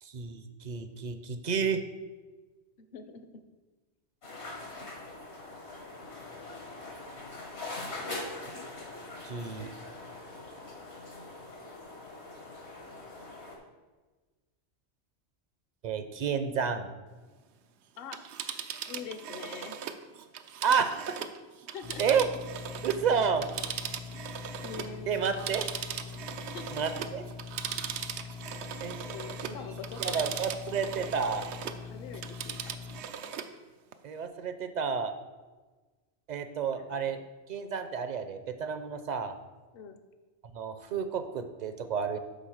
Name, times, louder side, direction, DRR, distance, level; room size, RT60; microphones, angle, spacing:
voice 1, 0.0-1.8 9.2-9.7 15.8-16.9 20.6-21.2 22.0-22.3 22.8-23.5 25.1-25.6 26.7-27.2 28.8-29.0 29.4-29.5 30.0-31.5 34.0-35.1 36.3-37.2 37.5-39.3 40.5-42.2, right 6 dB, 50° right, 9 dB, 0.6 m, -30 dB
voice 2, 2.8-3.3 18.0-18.2 18.8-19.8 21.7-22.2 24.6-25.5 26.4-26.8 29.0-30.2 31.8-32.8 36.7-37.3 39.7-40.0, left 6 dB, 65° left, 9 dB, 0.8 m, -44 dB
sound 1, 4.2-13.6, left 2 dB, 85° left, 1.9 m, -42 dB
Telephone, 18.0-23.1 23.4-31.8 32.1-33.5 33.9-34.0, right 8 dB, 85° right, 0.9 m, -39 dB
sound 2, 21.8-33.0, left 6 dB, 40° left, 0.3 m, -44 dB
9.2 x 3.6 x 6.4 m, 1.3 s
omnidirectional pair, 1.1 m